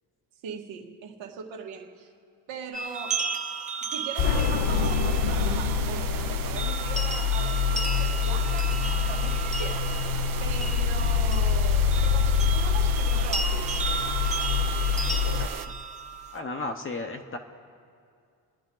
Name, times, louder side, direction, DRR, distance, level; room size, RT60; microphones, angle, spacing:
voice 1, 0.4-2.1 2.5-3.3 3.9-13.7, right 7 dB, 85° right, 1.9 m, -40 dB
sound 1, 2.7-16.4, right 4 dB, 15° right, 0.9 m, -35 dB
sound 2, 4.1-15.7, right 9 dB, 45° right, 0.7 m, -37 dB
sound 3, 4.2-15.5, left 7 dB, 60° left, 0.8 m, -25 dB
voice 2, 15.4-15.7 16.3-17.4, left 2 dB, 25° left, 0.9 m, -34 dB
29.5 x 11.0 x 3.9 m
cardioid pair, 150°, 46 cm